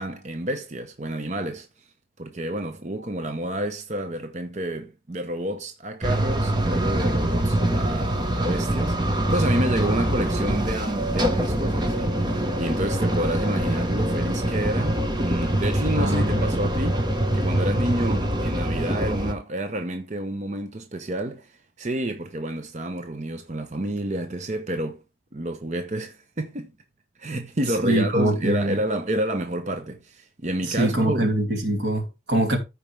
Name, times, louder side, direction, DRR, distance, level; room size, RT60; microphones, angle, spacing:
voice 1, 0.0-1.7 2.2-25.0 25.3-26.7 27.2-31.3, right 1 dB, 40° right, 0.7 m, -29 dB
sound 1, 6.0-19.3, right 1 dB, 25° right, 1.2 m, -24 dB
voice 2, 16.0-16.4 27.8-28.8 30.7-32.6, right 1 dB, 80° right, 2.7 m, -23 dB
14.0 x 4.9 x 3.3 m
head